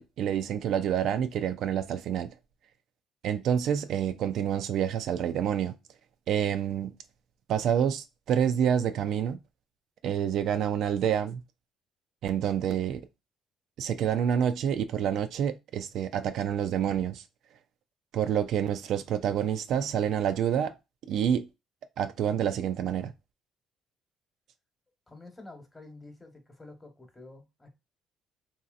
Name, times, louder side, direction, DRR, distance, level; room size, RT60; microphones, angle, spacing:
voice 1, 0.0-2.3 3.2-5.7 6.3-6.9 7.5-9.4 10.0-11.4 12.2-13.0 13.8-17.2 18.1-20.7 21.1-21.5 22.0-23.1, right 9 dB, 70° right, 0.3 m, -28 dB
voice 2, 25.1-27.7, left 2 dB, 15° left, 1.1 m, -49 dB
3.0 x 2.7 x 2.4 m
cardioid pair, 90°, 0 cm